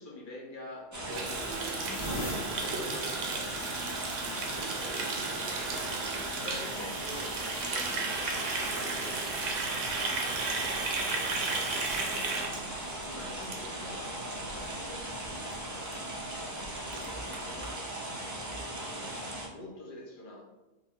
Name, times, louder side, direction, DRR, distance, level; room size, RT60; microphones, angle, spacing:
voice 1, 0.0-20.4, left 2 dB, 50° left, -1 dB, 0.7 m, -47 dB
sound 1, 0.9-1.3 1.8-12.1 13.0-13.2 14.8-14.9, equal, 70° left, 2.1 m, -46 dB
sound 2, 0.9-19.5, right 1 dB, 25° right, 0.4 m, -39 dB
Water tap faucet, 1.1-14.1 14.4-14.6 14.9-15.3 15.5-15.6 15.8-15.9 16.3-16.4 16.6-17.7, right 3 dB, 75° right, 1.0 m, -34 dB
4.7 x 2.2 x 3.6 m, 1.1 s
omnidirectional pair, 1.3 m